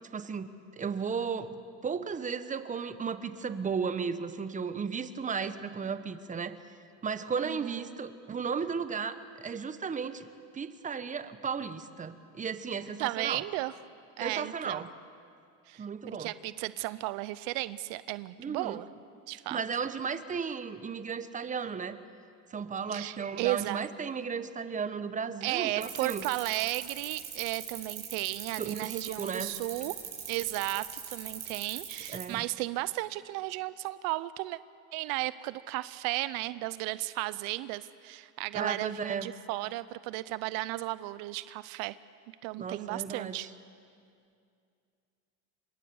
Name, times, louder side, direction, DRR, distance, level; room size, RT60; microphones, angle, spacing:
voice 1, 0.1-0.5 0.8-1.5 1.8-6.6 7.0-10.3 10.5-13.4 14.2-14.9 15.8-16.3 18.4-18.8 19.5-22.0 22.5-26.2 28.6-29.6 32.1-32.5 38.5-39.3 42.6-43.5, right 6 dB, 20° right, 12 dB, 1.1 m, -35 dB
voice 2, 13.0-13.7 14.2-14.9 15.7-18.9 19.3-19.6 22.9-23.8 25.4-29.9 30.3-34.6 34.9-42.0 42.4-43.5, right 18 dB, 75° right, 17 dB, 0.6 m, -34 dB
sound 1, 25.8-32.3, right 8 dB, 40° right, 7.5 m, -40 dB
26.0 x 22.5 x 7.1 m, 2.4 s
supercardioid pair, 115°, 34 cm